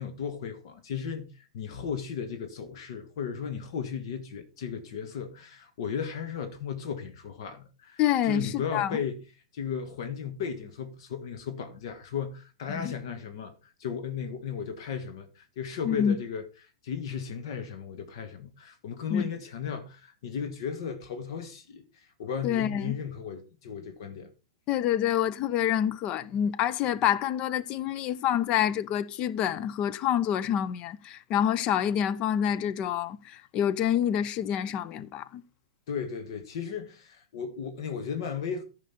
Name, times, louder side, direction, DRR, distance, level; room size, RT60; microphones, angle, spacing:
voice 1, 0.0-9.2 9.5-16.4 16.8-24.3 35.9-38.6, left 7 dB, 55° left, 1.4 m, -35 dB
voice 2, 8.0-9.0 12.7-12.9 15.8-16.2 19.1-19.3 22.4-22.9 24.7-35.4, left 10 dB, 35° left, 0.6 m, -27 dB
14.5 x 5.3 x 4.2 m
figure-of-eight pair, 105°, 3 cm